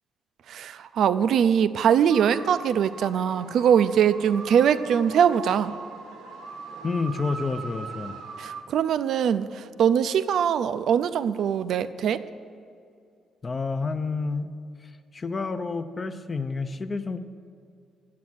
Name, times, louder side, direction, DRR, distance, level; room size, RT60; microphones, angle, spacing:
voice 1, 0.5-5.7 8.4-12.2, right 8 dB, 70° right, 13 dB, 0.4 m, -22 dB
sound 1, 2.1-8.6, right 4 dB, 90° right, 0.9 m, -40 dB
voice 2, 6.8-8.2 13.4-14.5 14.8-17.2, left 4 dB, 30° left, 10 dB, 0.6 m, -29 dB
8.5 x 7.3 x 7.9 m, 2.4 s
cardioid pair, 90°, 0 cm